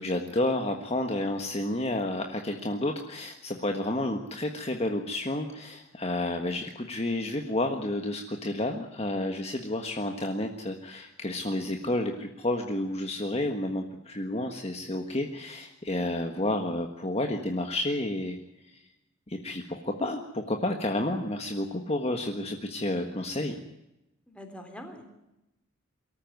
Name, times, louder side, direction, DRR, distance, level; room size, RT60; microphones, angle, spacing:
voice 1, 0.0-18.4 18.7-18.8 19.3-23.6, left 1 dB, 30° left, 4 dB, 1.5 m, -30 dB
voice 2, 24.3-25.1, equal, 5° left, 5 dB, 3.4 m, -45 dB
23.5 x 14.0 x 9.5 m, 0.92 s
head